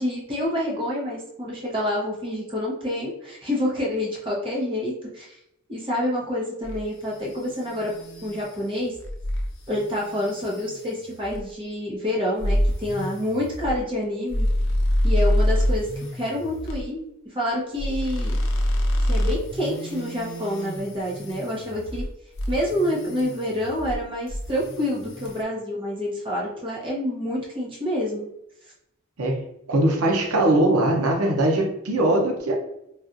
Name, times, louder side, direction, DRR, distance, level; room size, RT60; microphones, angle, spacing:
voice 1, 0.0-5.4 5.7-7.9 8.2-8.9 9.7-14.5 15.0-18.4 19.1-22.0 22.5-28.3, left 1 dB, 25° right, -4 dB, 0.9 m, -28 dB
sound 1, 6.6-11.5 12.4-16.8 17.8-22.1 22.3-24.0 24.3-25.4, equal, 65° left, 0.6 m, -27 dB
voice 2, 29.7-32.6, right 1 dB, 85° right, 1 dB, 0.7 m, -21 dB
4.1 x 2.3 x 2.5 m, 0.81 s
head